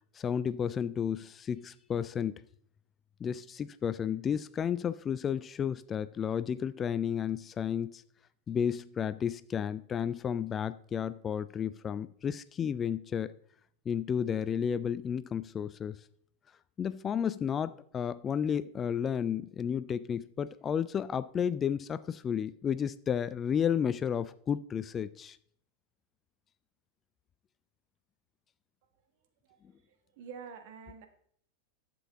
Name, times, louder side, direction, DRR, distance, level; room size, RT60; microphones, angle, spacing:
voice 1, 0.1-2.4 3.2-8.0 8.5-13.3 13.9-16.0 16.8-25.4, left 8 dB, 25° left, 0.3 m, -32 dB
voice 2, 29.9-31.1, right 6 dB, 50° right, 1.4 m, -47 dB
11.0 x 7.6 x 3.6 m
figure-of-eight pair, 90°, 0 cm